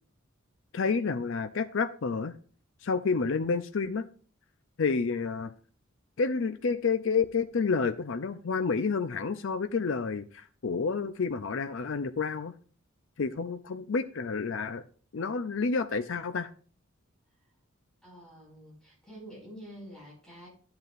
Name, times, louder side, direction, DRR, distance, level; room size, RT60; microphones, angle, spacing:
voice 1, 0.7-2.3 2.8-4.1 4.8-5.5 6.2-12.5 13.2-14.8 15.1-16.5, left 5 dB, 65° left, 9 dB, 0.5 m, -29 dB
voice 2, 18.0-20.5, equal, 5° left, -5 dB, 5.4 m, -48 dB
12.5 x 8.0 x 2.5 m, 0.41 s
head